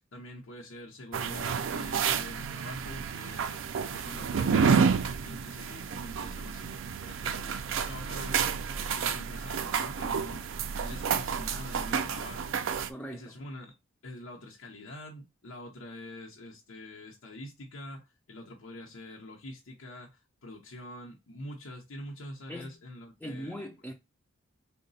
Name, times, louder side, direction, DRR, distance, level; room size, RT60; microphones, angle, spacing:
voice 1, 0.0-10.5 10.8-12.6 13.1-13.7 14.0-23.6, left 1 dB, 90° left, 0.8 m, -45 dB
sound 1, 1.1-12.9, right 6 dB, 70° right, 0.4 m, -30 dB
voice 2, 12.9-13.4 22.5-22.8 23.2-23.9, equal, 5° left, 0.4 m, -40 dB
3.7 x 2.1 x 4.0 m
head